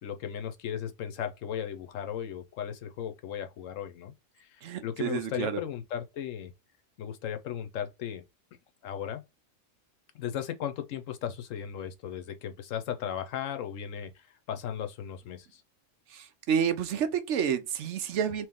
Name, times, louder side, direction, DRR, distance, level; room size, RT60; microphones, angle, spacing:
voice 1, 0.0-4.1 4.4-4.5 4.8-6.5 7.0-8.2 8.8-9.2 10.1-14.1 14.5-15.6, left 9 dB, 85° left, 1.1 m, -36 dB
voice 2, 4.6-5.6 16.1-18.5, right 8 dB, 70° right, 0.9 m, -29 dB
3.1 x 3.1 x 3.5 m
omnidirectional pair, 1.3 m